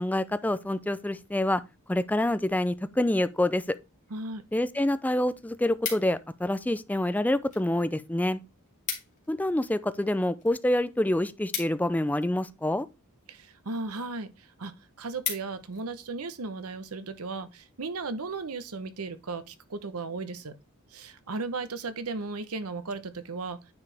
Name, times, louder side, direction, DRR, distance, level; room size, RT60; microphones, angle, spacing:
voice 1, 0.0-1.6 1.9-3.6 4.5-8.4 9.3-12.9, left 1 dB, 5° left, 0.4 m, -27 dB
voice 2, 4.1-4.4 13.3-20.6 20.9-23.6, right 3 dB, 80° right, 0.9 m, -36 dB
sound 1, 5.4-6.4 7.1-7.7 8.0-8.1 8.3-8.4 8.7-9.3 9.6-12.5 13.2-13.5 14.0-14.1 14.5-14.6 14.9-15.9 16.3-16.6, left 7 dB, 35° left, 2.3 m, -37 dB
9.5 x 4.8 x 3.3 m
head